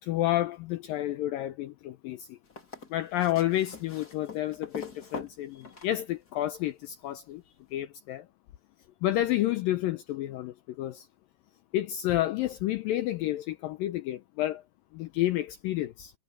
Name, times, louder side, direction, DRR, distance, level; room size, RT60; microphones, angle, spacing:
voice 1, 0.0-2.4 2.9-7.4 7.7-8.2 9.0-11.1 11.7-14.6 14.9-16.1, left 14 dB, 85° left, 2.0 m, -30 dB
sound 1, 2.4-6.5 7.8-7.9, left 3 dB, 25° left, 3.1 m, -44 dB
omnidirectional pair, 4.8 m